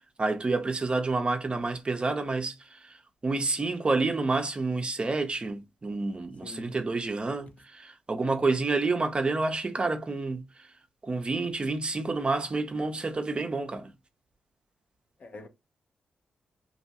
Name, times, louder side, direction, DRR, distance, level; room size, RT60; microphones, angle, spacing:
voice 1, 0.2-3.0 3.2-10.4 11.0-13.9, right 3 dB, 35° right, 0.6 m, -29 dB
voice 2, 6.4-6.8 15.2-15.5, left 3 dB, 55° left, 0.7 m, -44 dB
2.7 x 2.2 x 2.8 m
hypercardioid pair, 40°, 3 cm